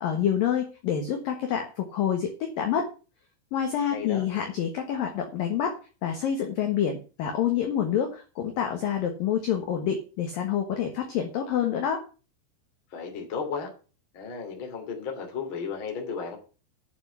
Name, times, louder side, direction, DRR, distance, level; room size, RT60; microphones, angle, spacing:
voice 1, 0.0-2.9 3.5-5.7 6.0-12.0, left 9 dB, 65° left, 4 dB, 2.4 m, -27 dB
voice 2, 3.9-4.2 12.9-13.7 14.1-16.4, left 5 dB, 30° left, 2 dB, 2.8 m, -34 dB
8.9 x 7.1 x 8.1 m, 0.35 s
omnidirectional pair, 5.9 m